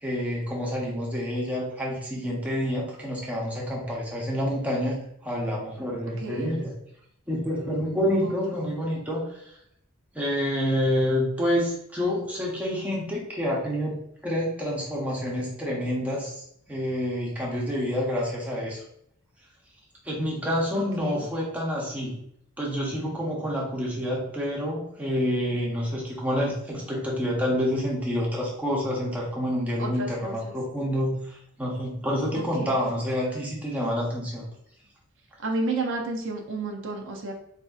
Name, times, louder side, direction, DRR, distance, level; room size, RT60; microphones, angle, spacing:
voice 1, 0.0-6.7 7.3-9.5 10.1-18.8 20.0-22.2 22.6-34.5, equal, 5° right, -4 dB, 0.7 m, -28 dB
voice 2, 6.2-6.5 8.2-8.3 20.7-21.3 29.8-30.5 32.3-32.9 35.4-37.3, right 2 dB, 60° right, 1 dB, 0.5 m, -32 dB
4.1 x 2.6 x 2.3 m, 0.73 s
head